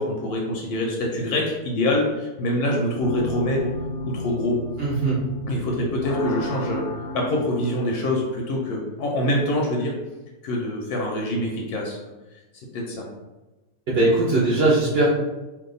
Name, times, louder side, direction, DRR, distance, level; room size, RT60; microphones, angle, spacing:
voice 1, 0.0-3.7 4.0-4.6 5.5-6.9 7.1-9.9 10.4-12.1 12.7-13.1, left 1 dB, 75° left, 0 dB, 1.1 m, -25 dB
sound 1, 3.0-8.4, left 1 dB, 50° left, 0.7 m, -33 dB
voice 2, 4.8-5.2 13.9-15.1, right 2 dB, 55° right, -6 dB, 0.7 m, -20 dB
2.7 x 2.4 x 3.8 m, 1.1 s
omnidirectional pair, 1.7 m